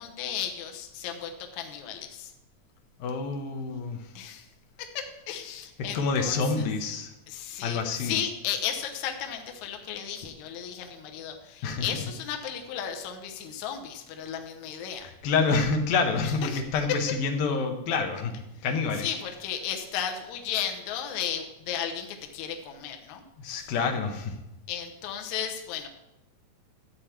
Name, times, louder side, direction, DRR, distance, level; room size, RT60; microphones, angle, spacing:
voice 1, 0.0-2.3 4.2-4.5 4.8-6.7 7.3-15.1 16.2-17.0 18.9-23.2 23.6-23.7 24.7-25.9, left 9 dB, 65° left, 4 dB, 2.1 m, -34 dB
voice 2, 3.0-4.0 5.9-7.1 7.6-8.2 11.6-11.9 15.0-19.1 23.4-24.3, left 4 dB, 85° left, 4 dB, 2.9 m, -27 dB
12.5 x 8.4 x 4.4 m, 0.94 s
omnidirectional pair, 4.0 m